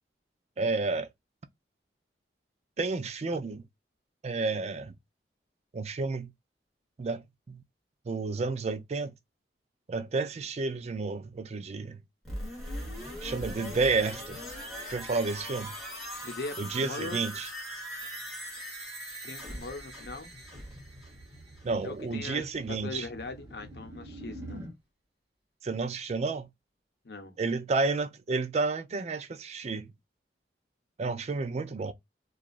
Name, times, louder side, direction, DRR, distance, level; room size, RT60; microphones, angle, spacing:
voice 1, 0.6-1.1 2.8-3.6 4.2-4.9 5.7-6.3 7.0-7.6 8.1-9.1 9.9-12.0 13.2-14.4 14.9-15.7 16.6-17.5 21.6-23.1 25.6-26.5 27.4-29.9 31.0-31.9, right 3 dB, 40° right, 0.4 m, -31 dB
sound 1, 12.3-22.0 22.3-22.4, equal, ahead, 1.4 m, -40 dB
voice 2, 16.2-17.2 19.2-20.3 21.8-24.6 27.0-27.4, left 3 dB, 65° left, 0.8 m, -40 dB
sound 2, 19.5-24.7, right 1 dB, 15° right, 1.0 m, -47 dB
2.8 x 2.4 x 2.4 m
head